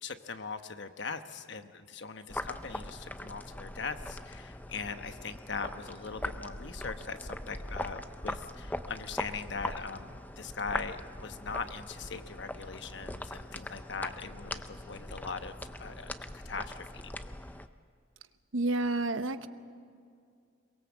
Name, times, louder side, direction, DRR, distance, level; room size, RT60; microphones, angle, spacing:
voice 1, 0.0-15.5 15.8-17.1, left 5 dB, 60° left, 9 dB, 1.1 m, -40 dB
sound 1, 2.3-17.7, left 1 dB, 10° left, 0.6 m, -41 dB
voice 2, 18.5-19.5, right 2 dB, 80° right, 11 dB, 1.0 m, -29 dB
23.0 x 22.5 x 7.4 m, 2.3 s
head